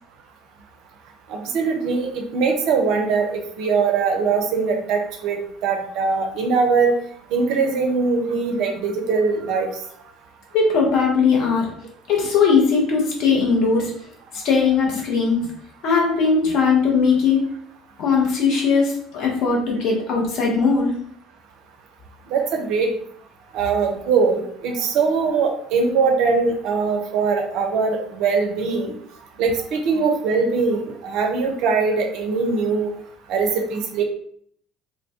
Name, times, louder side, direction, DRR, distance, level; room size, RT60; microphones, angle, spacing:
voice 1, 1.3-6.9 7.3-9.7 22.3-22.9 23.5-28.9 29.4-32.9 33.3-34.0, right 4 dB, 55° right, 3 dB, 0.4 m, -21 dB
voice 2, 10.5-11.7 12.1-13.9 14.3-15.4 15.8-17.5 18.0-20.9, left 5 dB, 55° left, -2 dB, 0.7 m, -19 dB
2.2 x 2.1 x 2.7 m, 0.63 s
figure-of-eight pair, 60°, 0 cm